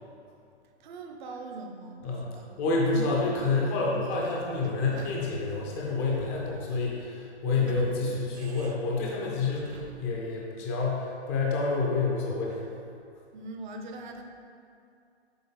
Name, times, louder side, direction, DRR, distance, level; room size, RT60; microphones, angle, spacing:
voice 1, 0.8-2.4 2.9-3.0 3.7-4.0 13.3-14.2, right 2 dB, 45° right, 3 dB, 0.7 m, -41 dB
voice 2, 2.0-12.6, left 3 dB, 15° left, -3 dB, 0.4 m, -28 dB
Sliding door / Squeak, 4.1-10.2, right 4 dB, 90° right, 0.6 m, -47 dB
6.9 x 3.9 x 3.7 m, 2.4 s
hypercardioid pair, 140°, 33 cm